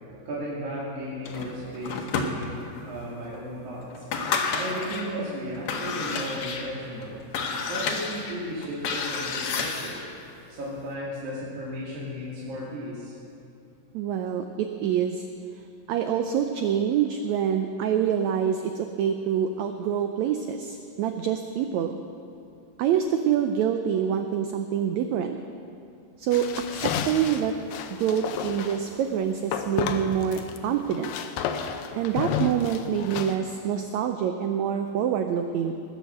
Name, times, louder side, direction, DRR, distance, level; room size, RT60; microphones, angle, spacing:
voice 1, 0.2-4.1 4.5-7.2 7.7-10.0 10.5-13.1, equal, 60° right, -7 dB, 3.4 m, -35 dB
sound 1, 1.2-2.8 3.3-3.4 3.9-5.1 5.5-10.1, left 4 dB, 65° left, 2.0 m, -30 dB
voice 2, 13.9-15.3 15.9-22.0 22.8-25.4 26.2-27.5 27.9-31.1 31.9-35.7, right 8 dB, 90° right, 6 dB, 1.6 m, -26 dB
sound 2, 26.3-28.8 29.5-30.6 30.8-33.4, left 7 dB, 90° left, 2.4 m, -31 dB
20.0 x 6.9 x 7.6 m, 2.8 s
omnidirectional pair, 4.0 m